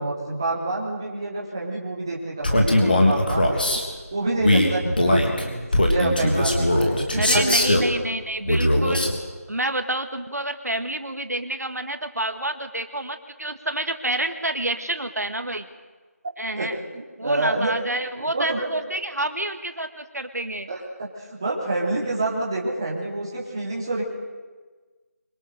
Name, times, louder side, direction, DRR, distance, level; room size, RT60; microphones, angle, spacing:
voice 1, 0.0-3.8 4.1-7.5 16.6-16.7 16.9-17.7 18.1-18.7 20.7-24.0, right 2 dB, 15° right, -4 dB, 3.2 m, -28 dB
Male speech man speaking, 2.4-3.8 4.4-7.9 8.4-9.2, left 1 dB, 35° left, 3.3 m, -20 dB
voice 2, 7.2-9.1 9.5-15.7 16.4-16.8 17.2-20.7, right 1 dB, 85° right, 7 dB, 2.1 m, -28 dB
24.5 x 24.5 x 6.6 m, 1.3 s
figure-of-eight pair, 175°, 9 cm